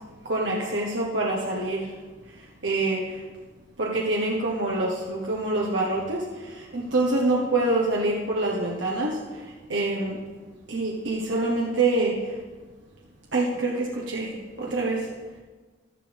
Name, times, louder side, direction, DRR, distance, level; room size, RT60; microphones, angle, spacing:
voice 1, 0.2-1.9 2.6-3.2 3.8-9.4 9.7-10.2 10.7-12.3 13.3-15.1, right 2 dB, 75° right, -2 dB, 1.3 m, -26 dB
15.0 x 11.5 x 3.6 m, 1.4 s
head